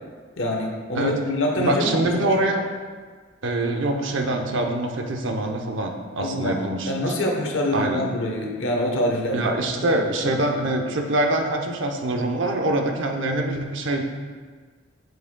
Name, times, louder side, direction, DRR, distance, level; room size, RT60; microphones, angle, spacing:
voice 1, 0.4-2.3 6.2-6.6 6.8-9.5 9.8-9.9 10.2-10.3, left 1 dB, 70° left, 0 dB, 1.0 m, -25 dB
voice 2, 1.6-2.7 3.4-6.9 7.7-8.0 9.3-14.0, right 2 dB, 65° right, 3 dB, 0.7 m, -24 dB
7.8 x 7.3 x 2.2 m, 1.5 s
head